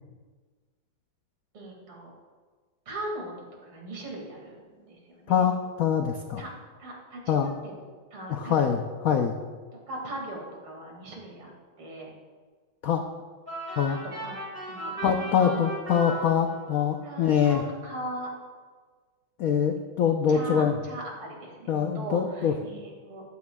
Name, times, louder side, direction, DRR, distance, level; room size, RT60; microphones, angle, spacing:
voice 1, 1.5-2.1 2.9-3.3 3.6-5.5 6.4-6.5 6.8-7.4 7.6-7.7 8.1-8.9 9.9-11.5 11.8-12.1 13.9-14.4 14.7-15.7 17.0-18.3 20.3-23.2, right 1 dB, 85° right, -1 dB, 3.0 m, -39 dB
voice 2, 5.3-6.4 7.3-7.5 8.3-9.4 12.8-13.0 13.8-14.0 15.0-17.6 19.4-20.8 21.7-22.5, left 7 dB, 80° left, 5 dB, 0.7 m, -24 dB
sound 1, 13.5-17.0, right 1 dB, 25° right, 3.5 m, -36 dB
14.0 x 11.5 x 2.3 m, 1.5 s
omnidirectional pair, 2.2 m